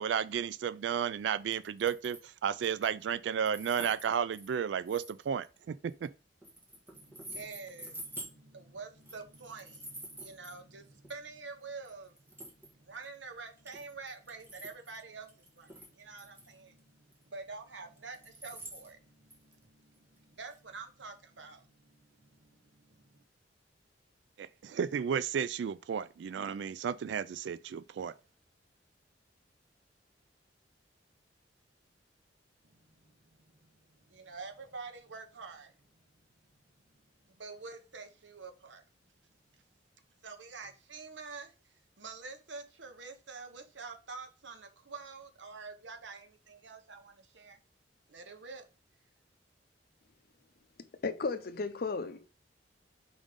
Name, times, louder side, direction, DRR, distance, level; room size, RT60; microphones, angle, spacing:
voice 1, 0.0-6.1 24.4-28.1, right 7 dB, 70° right, 0.3 m, -33 dB
sound 1, 1.5-2.3 2.6-3.0 3.5-6.1 6.4-8.3 9.0-10.6 11.0-11.1 11.8-11.9 12.2-13.0 13.6-15.0 15.3-16.5 16.8-16.9 17.1-17.2 18.0-19.7 19.9-20.0 20.5-20.6, right 1 dB, 10° right, 1.5 m, -48 dB
voice 2, 6.9-23.2 32.6-36.0 37.3-38.8 40.2-47.6 48.1-48.7, right 4 dB, 90° right, 1.1 m, -48 dB
voice 3, 51.0-52.3, left 4 dB, 55° left, 0.6 m, -34 dB
5.1 x 3.7 x 5.1 m
head